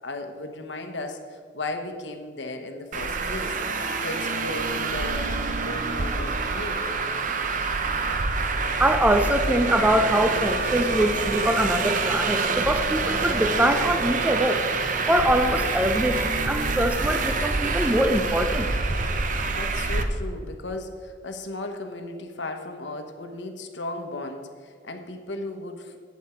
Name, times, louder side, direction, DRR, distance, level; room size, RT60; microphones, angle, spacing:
voice 1, 0.0-3.6 4.0-6.8 19.6-26.0, left 2 dB, 65° left, 6 dB, 1.0 m, -35 dB
Traffic noise roadway noise, 2.9-20.0, right 3 dB, 40° right, 0.7 m, -26 dB
voice 2, 8.8-14.6 15.1-18.7, right 1 dB, 10° right, 6 dB, 0.4 m, -23 dB
11.5 x 8.5 x 4.4 m, 2.2 s
head